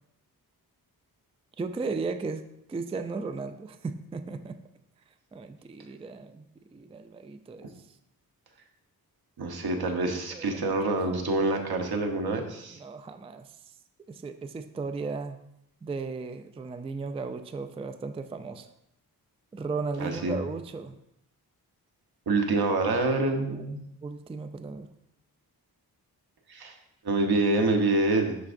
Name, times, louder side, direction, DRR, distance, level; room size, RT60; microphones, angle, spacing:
voice 1, 1.6-4.6 5.3-6.5 6.7-7.7 10.3-10.6 12.7-13.5 14.1-15.4 15.8-18.7 19.5-21.0 23.5-23.8 24.0-24.9, right 4 dB, 15° right, 8 dB, 0.3 m, -35 dB
voice 2, 9.4-12.8 20.0-20.4 22.3-23.8 26.5-26.7 27.0-28.4, right 2 dB, 75° right, 4 dB, 1.1 m, -26 dB
11.5 x 4.7 x 2.6 m, 0.79 s
wide cardioid pair, 125°, 38 cm